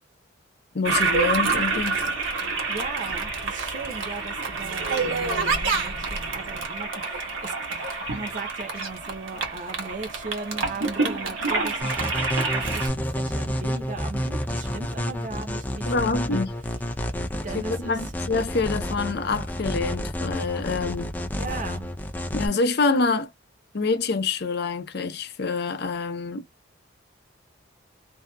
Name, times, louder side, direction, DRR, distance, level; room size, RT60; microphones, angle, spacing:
voice 1, 0.7-2.0 15.9-16.5 17.5-21.2 22.3-23.3 23.7-26.4, left 4 dB, 55° left, 0.6 m, -26 dB
Toilet flush, 0.8-12.9, right 4 dB, 75° right, 1.2 m, -27 dB
voice 2, 2.7-12.2 12.5-16.3 17.3-18.0 21.4-21.9, right 3 dB, 40° right, 0.6 m, -38 dB
sound 1, 11.8-22.5, equal, 10° left, 0.4 m, -30 dB
2.7 x 2.3 x 2.2 m
head